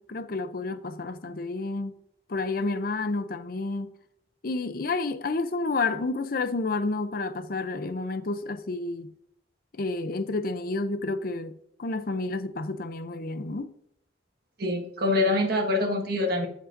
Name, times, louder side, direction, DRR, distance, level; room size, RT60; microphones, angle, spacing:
voice 1, 0.0-1.9 2.3-3.9 4.4-9.1 9.7-11.5 11.8-13.7, left 3 dB, 55° left, 0.6 m, -30 dB
voice 2, 14.6-16.5, left 2 dB, 60° right, 1.6 m, -25 dB
14.0 x 5.3 x 2.6 m
head